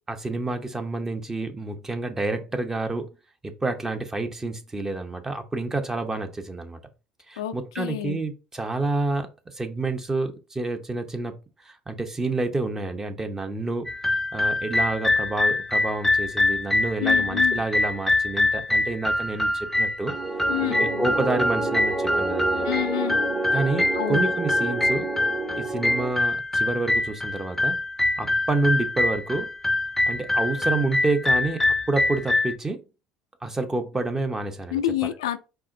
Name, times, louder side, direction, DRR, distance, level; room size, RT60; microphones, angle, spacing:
voice 1, 0.1-3.1 3.4-6.8 7.3-11.4 11.6-13.9 14.3-20.1 20.6-22.7 23.5-25.1 25.6-27.8 28.2-29.5 30.1-32.8 33.4-35.1, right 2 dB, 20° right, 0.8 m, -28 dB
voice 2, 7.4-8.2 17.0-17.6 20.5-20.9 22.6-23.2 23.9-24.2 34.7-35.4, left 12 dB, 85° left, 0.3 m, -28 dB
sound 1, 13.9-32.5, left 2 dB, 10° left, 0.4 m, -24 dB
sound 2, 20.0-26.1, right 2 dB, 45° right, 2.2 m, -29 dB
4.7 x 3.1 x 2.6 m
hypercardioid pair, 70°, 3 cm